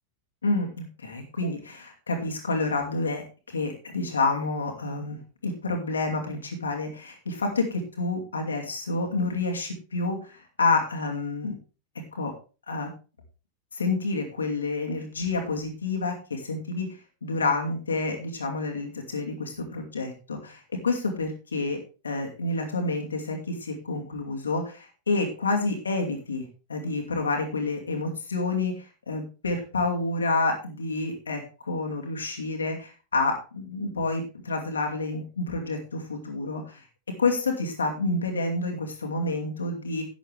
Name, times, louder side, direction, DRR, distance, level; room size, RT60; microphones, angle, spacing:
voice 1, 0.4-11.5 12.1-12.3 12.7-12.9 13.7-16.9 17.2-21.8 22.0-36.8 37.2-40.0, left 3 dB, 75° left, 2 dB, 2.5 m, -29 dB
11.5 x 9.1 x 3.5 m, 0.32 s
figure-of-eight pair, 90°, 0 cm